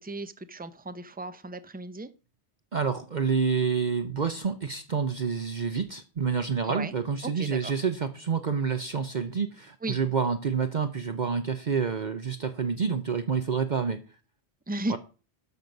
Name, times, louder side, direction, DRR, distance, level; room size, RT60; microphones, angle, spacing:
voice 1, 0.0-2.1 6.6-6.9 7.2-7.7 9.8-10.0 14.7-15.0, right 2 dB, 10° right, 0.4 m, -35 dB
voice 2, 2.7-14.0 14.9-15.0, right 6 dB, 45° right, 0.8 m, -28 dB
12.5 x 6.2 x 5.3 m
omnidirectional pair, 1.1 m